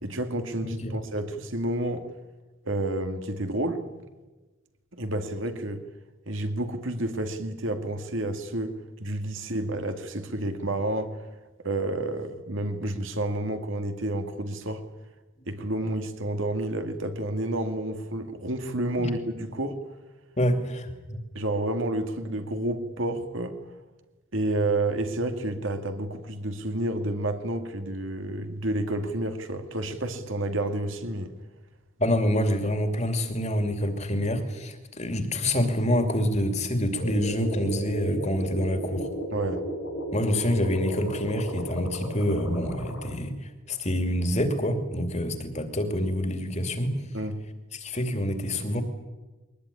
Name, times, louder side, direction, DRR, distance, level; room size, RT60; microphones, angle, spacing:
voice 1, 0.0-2.1 2.7-3.8 4.9-5.8 6.3-11.2 11.6-14.8 15.5-19.8 21.3-23.6 24.3-31.3 39.3-39.7 47.1-47.4, right 1 dB, 65° right, 2.3 m, -30 dB
voice 2, 0.6-0.9 19.0-19.1 20.4-21.2 32.0-39.1 40.1-46.9 47.7-48.8, left 1 dB, 30° left, 2.7 m, -27 dB
sound 1, 37.0-43.1, equal, 70° left, 5.1 m, -34 dB
22.0 x 20.0 x 9.8 m
head